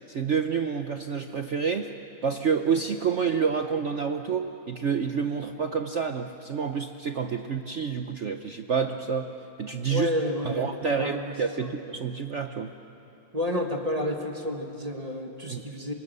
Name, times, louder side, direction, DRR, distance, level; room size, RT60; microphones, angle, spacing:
voice 1, 0.1-1.9 2.2-9.3 9.6-10.1 10.4-12.7 15.5-15.6, right 6 dB, 70° right, 6 dB, 0.6 m, -28 dB
voice 2, 9.9-11.7 13.3-15.9, left 1 dB, 20° right, 3 dB, 1.6 m, -30 dB
28.5 x 25.5 x 6.8 m, 3.0 s
omnidirectional pair, 2.2 m